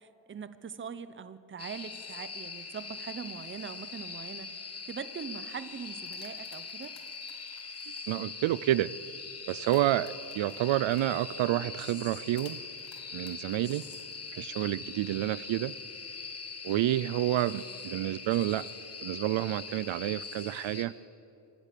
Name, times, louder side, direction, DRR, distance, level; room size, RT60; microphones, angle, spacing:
voice 1, 0.0-4.5 4.9-6.9 13.6-13.8, right 6 dB, 25° right, 13 dB, 0.7 m, -42 dB
sound 1, 1.6-20.9, left 5 dB, 35° left, 1.4 m, -42 dB
sound 2, 6.0-8.2 9.7-11.5 12.3-14.8, left 6 dB, 85° left, 2.5 m, -58 dB
voice 2, 7.9-8.9 9.5-12.6 13.1-13.8 14.3-15.7 16.6-18.7 19.0-20.9, right 14 dB, 85° right, 18 dB, 0.6 m, -29 dB
24.0 x 17.5 x 6.8 m, 2.8 s
wide cardioid pair, 160°, 45 cm